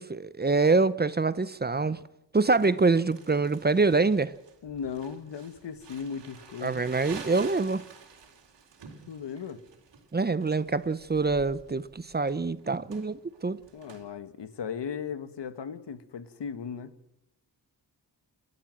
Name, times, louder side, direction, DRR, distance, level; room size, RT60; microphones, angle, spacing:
voice 1, 0.0-2.0 2.3-4.3 6.6-7.8 10.1-13.6, right 3 dB, 25° right, 0.7 m, -25 dB
Crumpling crinkling, 2.5-14.0, right 6 dB, 85° right, 4.1 m, -49 dB
voice 2, 4.6-6.8 9.1-9.6 13.7-16.9, left 7 dB, 85° left, 1.7 m, -37 dB
29.5 x 13.0 x 7.7 m
wide cardioid pair, 145°, 41 cm